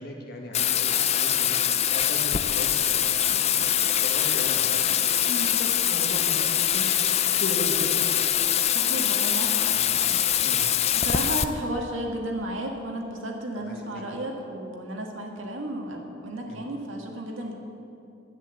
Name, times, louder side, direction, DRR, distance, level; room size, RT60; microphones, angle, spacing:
voice 1, 0.0-7.0 7.4-8.0 9.7-9.9 10.4-10.7 13.5-14.0 16.5-16.6, left 1 dB, 50° left, 1 dB, 1.6 m, -37 dB
Bathtub (filling or washing), 0.5-11.4, left 10 dB, 30° left, 0.4 m, -23 dB
voice 2, 5.3-5.6 8.7-10.2 10.9-17.5, right 1 dB, 75° right, 1 dB, 1.9 m, -33 dB
10.5 x 9.2 x 8.0 m, 2.8 s
head